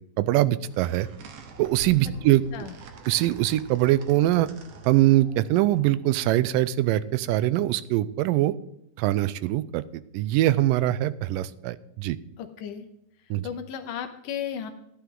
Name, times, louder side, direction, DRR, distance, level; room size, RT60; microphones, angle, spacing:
voice 1, 0.2-1.1 1.6-2.4 3.1-4.5 4.9-8.5 9.0-9.8 10.1-12.2 13.3-13.5, right 15 dB, 80° right, 16 dB, 2.1 m, -22 dB
sound 1, 0.6-6.7, right 3 dB, 65° right, 2.1 m, -45 dB
voice 2, 12.4-12.9 13.4-14.7, left 8 dB, 75° left, 7 dB, 2.1 m, -34 dB
14.0 x 10.5 x 3.8 m, 0.79 s
omnidirectional pair, 4.0 m